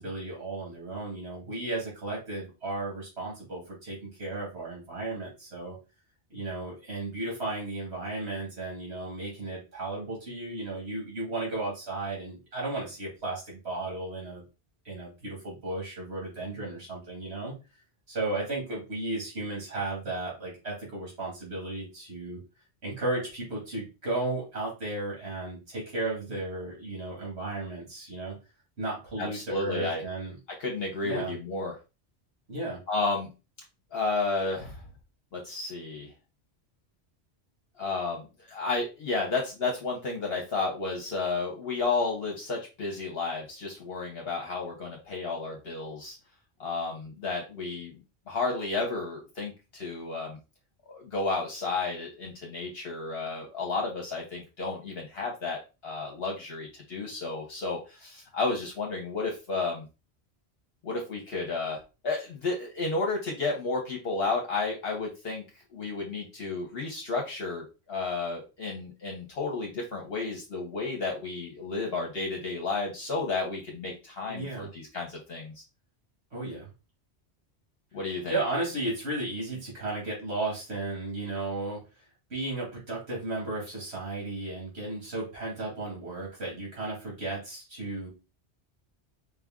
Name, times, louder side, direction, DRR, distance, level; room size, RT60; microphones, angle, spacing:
voice 1, 0.0-5.8 6.3-14.4 14.8-17.5 18.1-22.4 22.8-28.4 28.8-30.3 31.0-31.3 32.5-32.8 74.3-74.7 76.3-76.7 78.3-81.8 82.3-88.1, right 2 dB, 75° right, -3 dB, 2.4 m, -34 dB
voice 2, 29.2-30.0 30.6-31.7 32.9-33.3 33.9-34.8 35.3-36.1 37.8-46.1 46.6-48.0 48.3-50.4 50.9-59.9 60.8-65.4 65.7-75.6 77.9-78.4, left 3 dB, 65° left, 0 dB, 1.2 m, -32 dB
5.1 x 2.5 x 3.6 m, 0.29 s
omnidirectional pair, 1.1 m